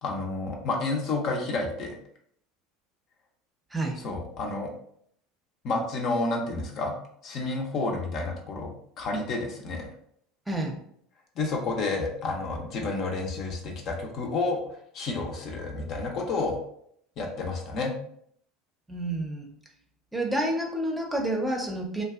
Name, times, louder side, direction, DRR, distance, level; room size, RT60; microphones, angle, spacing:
voice 1, 0.0-1.9 4.0-4.7 5.6-6.9 7.2-9.9 11.4-16.6 17.2-17.9, left 3 dB, 50° left, 1 dB, 0.6 m, -30 dB
voice 2, 10.5-10.8 18.9-19.5 20.1-22.0, right 1 dB, 10° right, 1 dB, 0.6 m, -29 dB
2.6 x 2.3 x 2.4 m, 0.66 s
hypercardioid pair, 75°, 0 cm